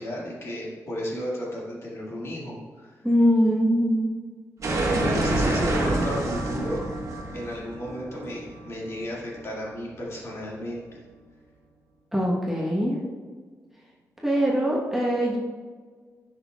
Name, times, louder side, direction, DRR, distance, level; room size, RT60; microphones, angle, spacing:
voice 1, 0.0-2.9 4.9-6.9 7.3-10.8, equal, 50° left, -5 dB, 2.1 m, -33 dB
voice 2, 3.0-4.1 12.1-13.0 14.2-15.4, equal, 5° right, -4 dB, 1.2 m, -22 dB
sound 1, 4.6-9.4, right 2 dB, 60° right, 1.3 m, -27 dB
9.5 x 5.9 x 2.4 m, 1.5 s
wide cardioid pair, 110°, 6 cm